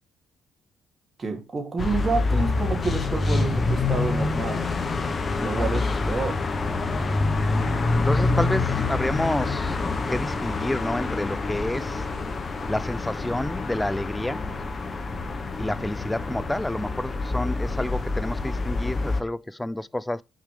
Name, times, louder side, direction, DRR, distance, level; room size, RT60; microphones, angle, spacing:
voice 1, 1.2-4.7 5.4-6.4, right 3 dB, 30° right, 2.9 m, -29 dB
sound 1, 1.8-19.2, left 3 dB, 35° left, 1.2 m, -26 dB
voice 2, 5.4-5.7 8.1-9.8 10.1-12.0 12.7-14.4 15.6-20.2, left 1 dB, 10° left, 0.4 m, -29 dB
6.6 x 4.9 x 5.0 m
cardioid pair, 90°, 0 cm